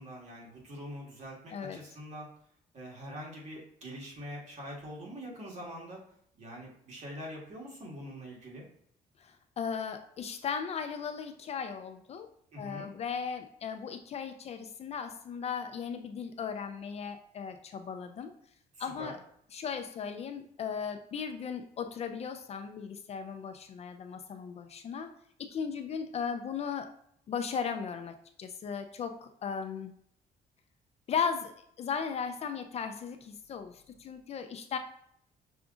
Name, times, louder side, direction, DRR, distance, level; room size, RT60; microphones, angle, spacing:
voice 1, 0.0-2.3 2.7-6.0 6.4-8.6 12.5-12.9 18.7-19.2, equal, 45° right, -2 dB, 1.7 m, -44 dB
voice 2, 9.2-12.3 12.6-18.3 18.8-19.2 19.5-25.1 25.4-26.9 27.3-29.9 31.1-34.8, left 6 dB, 40° left, 7 dB, 0.4 m, -37 dB
5.9 x 2.5 x 3.7 m, 0.68 s
cardioid pair, 140°, 16 cm